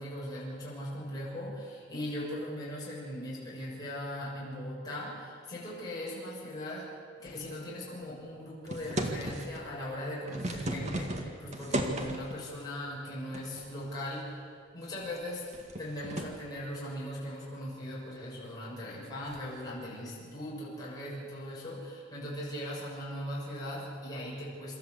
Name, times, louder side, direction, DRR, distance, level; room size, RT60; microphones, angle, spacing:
voice 1, 0.0-15.5 15.8-24.8, equal, 20° left, -7 dB, 6.7 m, -39 dB
sound 1, 8.7-9.6 10.1-12.4 13.3-13.9 14.2-14.3 14.9-16.4 19.3-19.5, right 1 dB, 35° right, 1.9 m, -35 dB
27.0 x 13.5 x 8.0 m, 2.1 s
head